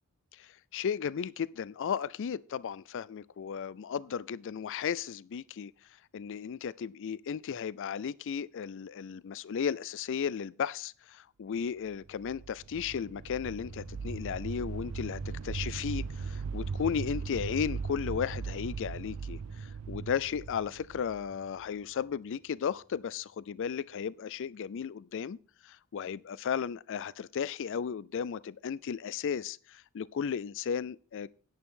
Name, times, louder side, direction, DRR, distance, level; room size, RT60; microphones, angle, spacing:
voice 1, 0.3-5.7 6.1-25.4 25.6-31.3, left 7 dB, 55° left, 0.4 m, -35 dB
sound 1, 12.0-21.8, right 5 dB, 70° right, 0.5 m, -38 dB
sound 2, 13.0-23.8 24.0-24.1, left 1 dB, 40° left, 1.1 m, -55 dB
10.5 x 9.6 x 3.7 m
head